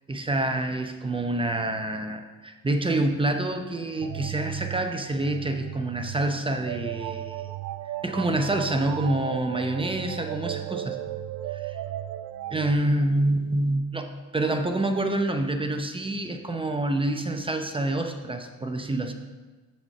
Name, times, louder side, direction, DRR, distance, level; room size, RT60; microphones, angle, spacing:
voice 1, 0.1-7.6 8.0-11.0 11.5-11.8 12.5-19.1, right 2 dB, 15° right, 5 dB, 0.7 m, -27 dB
sound 1, 4.0-12.7, right 13 dB, 80° right, 0.5 m, -35 dB
7.6 x 4.4 x 6.6 m, 1.3 s
cardioid pair, 105°, 35 cm